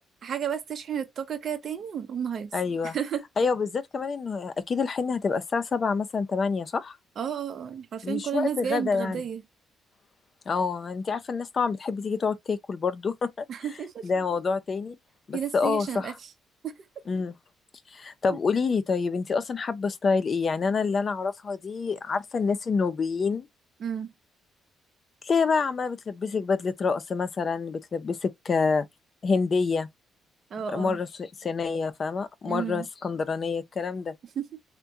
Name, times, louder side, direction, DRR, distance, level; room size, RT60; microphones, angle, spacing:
voice 1, 0.2-2.5 2.8-3.2 7.2-9.4 13.5-14.1 15.3-16.3 16.6-16.7 23.8-24.1 30.5-31.0 32.5-32.9 34.4-34.5, right 8 dB, 55° right, 0.6 m, -32 dB
voice 2, 2.5-3.0 3.4-7.0 8.0-9.2 10.5-13.5 14.0-15.0 15.3-16.1 17.1-17.3 17.9-23.5 25.2-28.9 29.2-29.9 30.7-34.1, left 5 dB, 40° left, 0.5 m, -27 dB
3.5 x 2.2 x 2.7 m
cardioid pair, 90°, 0 cm